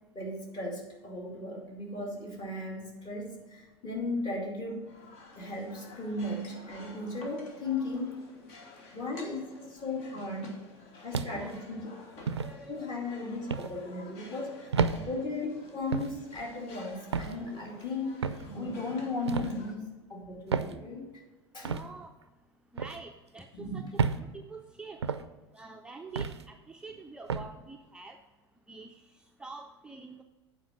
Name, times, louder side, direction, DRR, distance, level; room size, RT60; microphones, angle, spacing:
voice 1, 0.1-4.9 5.4-8.2 8.9-10.6 11.0-11.9 12.4-21.0 21.5-21.7 23.5-23.9, left 2 dB, 30° left, -1 dB, 2.4 m, -36 dB
sound 1, 4.8-19.7, left 3 dB, 50° left, 1.5 m, -51 dB
sound 2, 11.1-11.6 12.3-12.5 13.5-13.7 14.7-15.0 15.9-16.2 17.1-17.4 18.2-18.5 19.3-19.5 20.5-20.8 21.6-21.9 22.8-23.0 24.0-24.2 25.0-25.3 26.2-26.4 27.3-27.5, right 5 dB, 80° right, 0.4 m, -30 dB
voice 2, 21.6-22.1 22.8-25.0 25.5-28.2 28.7-29.0 29.4-30.2, right 3 dB, 5° right, 3 dB, 0.5 m, -46 dB
8.4 x 4.8 x 6.5 m, 1.2 s
figure-of-eight pair, 80°, 14 cm